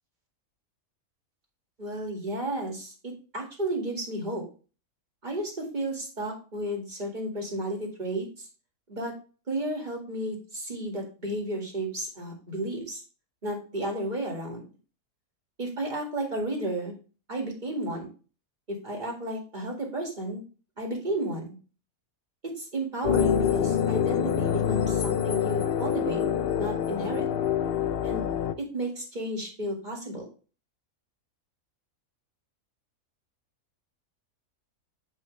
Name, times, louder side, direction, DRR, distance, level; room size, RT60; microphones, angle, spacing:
voice 1, 1.8-4.4 5.2-8.5 8.9-9.1 9.5-13.0 13.4-14.7 15.6-17.0 17.3-18.1 18.7-20.4 20.8-21.6 22.4-26.2 26.6-27.3 28.0-28.3 28.7-30.3, right 1 dB, 30° right, 0 dB, 2.2 m, -32 dB
sound 1, 23.0-28.5, left 9 dB, 70° left, 0.5 m, -26 dB
7.3 x 5.3 x 3.2 m, 0.35 s
omnidirectional pair, 1.5 m